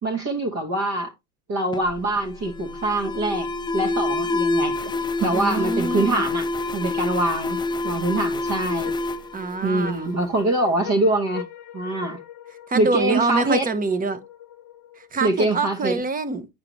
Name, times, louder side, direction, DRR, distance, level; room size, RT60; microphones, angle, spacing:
voice 1, 0.0-1.1 1.5-3.5 3.7-4.9 5.2-6.5 6.7-7.6 7.8-8.9 9.6-11.4 11.7-12.2 12.7-13.7 15.2-16.0, right 2 dB, 35° right, 1.3 m, -24 dB
Alarm, 1.7-10.3, left 2 dB, 10° left, 0.4 m, -27 dB
voice 2, 5.3-6.2 9.3-10.2 12.7-14.2 15.0-16.5, right 3 dB, 20° right, 0.9 m, -25 dB
sound 1, 7.8-15.4, left 12 dB, 45° left, 1.0 m, -43 dB
9.8 x 4.8 x 3.1 m
hypercardioid pair, 90°, 44 cm